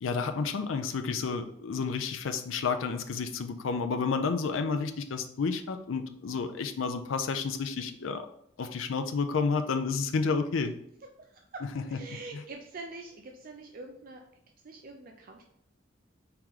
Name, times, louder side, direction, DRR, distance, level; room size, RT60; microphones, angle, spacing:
voice 1, 0.0-8.3 8.6-10.7, left 5 dB, 80° left, 8 dB, 0.5 m, -30 dB
voice 2, 11.2-14.2 14.6-15.4, right 3 dB, 45° right, 2 dB, 0.5 m, -45 dB
4.8 x 3.0 x 3.7 m, 0.72 s
head